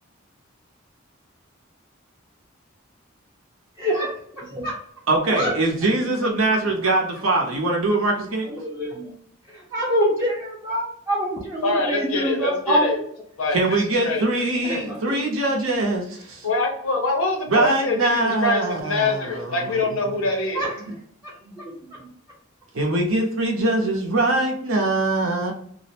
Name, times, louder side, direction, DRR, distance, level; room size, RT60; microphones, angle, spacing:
voice 1, 3.8-4.1 4.4-4.7 5.4-5.5 8.7-9.1 9.7-12.9 14.7-14.8 15.1-15.2 20.6-20.7 21.6-21.8, equal, 10° right, -7 dB, 0.5 m, -24 dB
voice 2, 5.1-8.5 13.5-16.5 17.5-19.8 22.7-25.5, right 2 dB, 75° right, 0 dB, 0.7 m, -22 dB
voice 3, 11.6-13.0 13.4-14.2 16.4-20.7, left 2 dB, 85° left, 2 dB, 0.7 m, -24 dB
2.4 x 2.0 x 2.7 m, 0.65 s
head